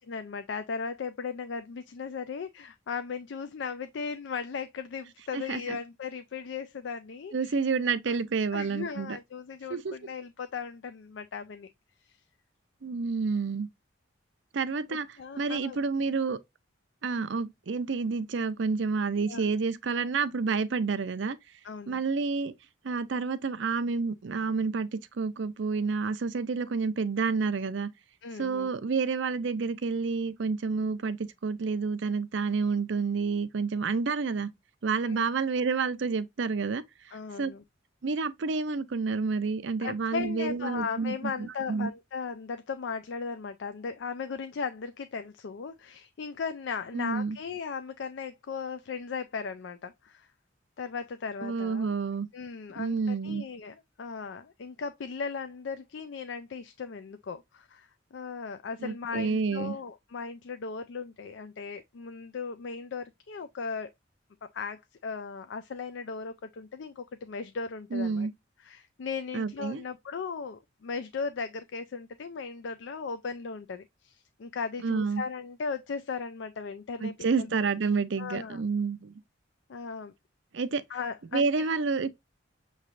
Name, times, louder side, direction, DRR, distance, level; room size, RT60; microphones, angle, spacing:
voice 1, 0.1-7.6 8.1-8.2 8.5-11.7 12.0-12.2 14.9-15.8 19.3-19.5 21.6-22.0 28.2-28.7 35.0-35.3 37.1-37.6 39.8-50.3 50.8-51.9 52.3-63.9 64.4-68.3 68.6-77.5 78.2-78.6 79.7-80.1 80.9-81.7, left 5 dB, 65° left, 0.4 m, -37 dB
voice 2, 5.3-5.8 7.3-9.2 9.7-9.9 12.8-13.7 14.5-15.1 15.4-16.4 17.0-21.4 21.9-22.5 22.8-27.9 28.4-34.5 34.8-36.8 37.4-37.5 38.0-41.9 46.9-47.4 51.4-52.3 52.8-53.4 58.8-59.7 67.9-68.3 69.3-69.8 74.8-75.2 77.0-79.1 80.5-80.8 81.3-82.1, right 4 dB, 65° right, 0.5 m, -29 dB
6.6 x 3.2 x 2.5 m
head